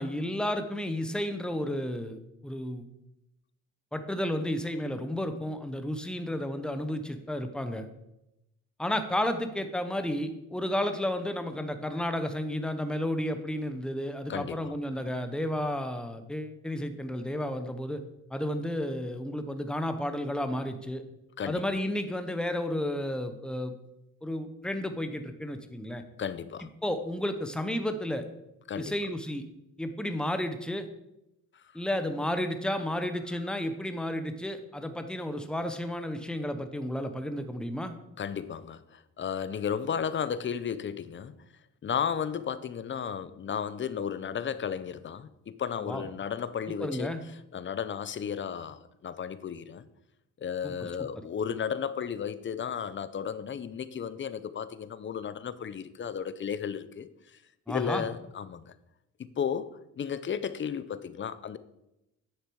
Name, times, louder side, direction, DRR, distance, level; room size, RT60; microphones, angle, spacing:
voice 1, 0.0-2.9 3.9-7.9 8.8-18.0 18.3-21.0 21.5-23.7 24.2-26.0 26.8-28.3 28.7-29.4 29.8-30.9 31.7-37.9 45.8-46.0 46.8-47.2 50.6-50.7 57.7-58.0, left 1 dB, 5° left, 1.0 m, -32 dB
voice 2, 14.3-14.7 21.4-21.6 26.2-26.7 28.7-28.9 38.2-41.4 41.8-47.1 47.5-49.9 50.4-57.1 57.7-58.7 59.2-59.7 60.0-61.6, left 7 dB, 40° left, 0.7 m, -34 dB
9.9 x 6.5 x 4.7 m
cardioid pair, 90°, 30 cm